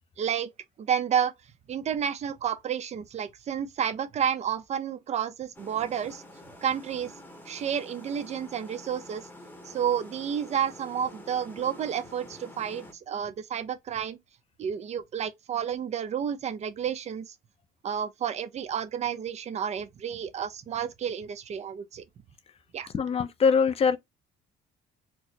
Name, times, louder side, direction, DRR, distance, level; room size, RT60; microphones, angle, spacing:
voice 1, 0.2-0.5 0.8-1.3 1.7-6.2 6.6-7.1 7.5-9.3 9.6-14.2 14.6-17.3 17.8-22.0 22.7-22.9, right 8 dB, 40° right, 0.6 m, -30 dB
sound 1, 5.5-12.9, left 1 dB, 10° left, 0.9 m, -48 dB
voice 2, 22.9-24.0, left 5 dB, 35° left, 0.6 m, -23 dB
4.4 x 2.0 x 2.8 m
cardioid pair, 110°, 17 cm